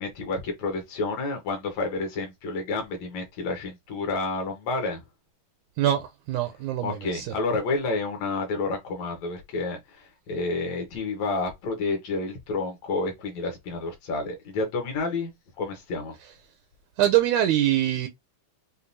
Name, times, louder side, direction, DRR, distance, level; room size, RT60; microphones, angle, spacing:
voice 1, 0.0-5.0 6.8-15.3 15.6-16.1, left 3 dB, 65° left, 2.2 m, -30 dB
voice 2, 5.8-7.3 17.0-18.1, right 12 dB, 85° right, 1.7 m, -24 dB
7.0 x 2.6 x 2.6 m
omnidirectional pair, 3.9 m